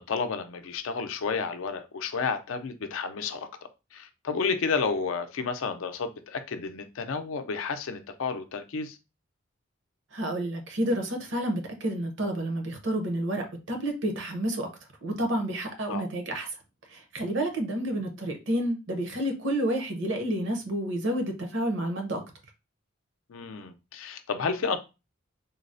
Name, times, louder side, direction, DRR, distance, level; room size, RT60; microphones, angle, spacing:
voice 1, 0.0-3.5 3.9-9.0 15.9-16.0 23.3-24.8, left 5 dB, 85° left, 0.5 m, -31 dB
voice 2, 10.1-14.7 15.0-16.5 16.9-22.2, right 1 dB, 70° right, 0.8 m, -30 dB
3.8 x 2.0 x 2.5 m
head